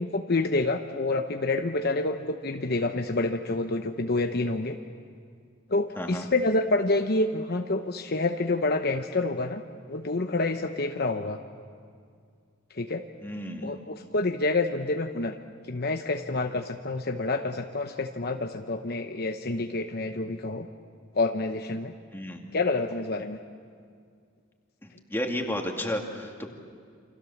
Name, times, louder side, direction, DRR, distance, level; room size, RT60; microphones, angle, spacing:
voice 1, 0.0-4.8 5.7-9.6 9.9-11.4 12.7-13.0 13.6-15.4 15.7-20.7 21.1-21.9 22.5-23.4, left 2 dB, 50° left, 5 dB, 1.0 m, -28 dB
voice 2, 6.0-6.3 13.2-13.7 22.1-22.4 24.8-26.5, left 1 dB, 10° left, 1 dB, 2.4 m, -32 dB
29.0 x 26.5 x 7.3 m, 2.2 s
head